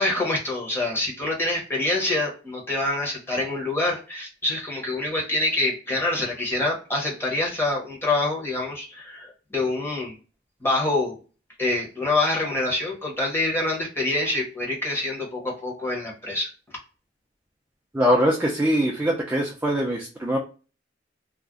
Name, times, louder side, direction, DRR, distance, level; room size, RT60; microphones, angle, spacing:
voice 1, 0.0-10.1 10.6-11.2 11.6-16.5, left 2 dB, 10° left, -2 dB, 0.9 m, -26 dB
voice 2, 17.9-20.4, equal, 10° right, -2 dB, 0.3 m, -22 dB
2.4 x 2.1 x 3.5 m, 0.35 s
head